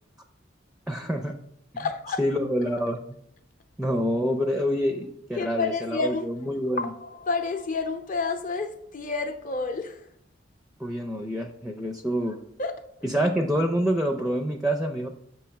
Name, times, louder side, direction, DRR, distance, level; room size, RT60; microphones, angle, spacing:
voice 1, 0.9-1.3 2.2-3.0 3.8-6.9 10.8-12.4 13.0-15.1, equal, 5° right, 0.4 m, -27 dB
voice 2, 1.8-2.2 5.4-6.4 6.8-10.1 12.6-12.7, left 4 dB, 45° left, 0.6 m, -29 dB
6.9 x 3.1 x 5.7 m
head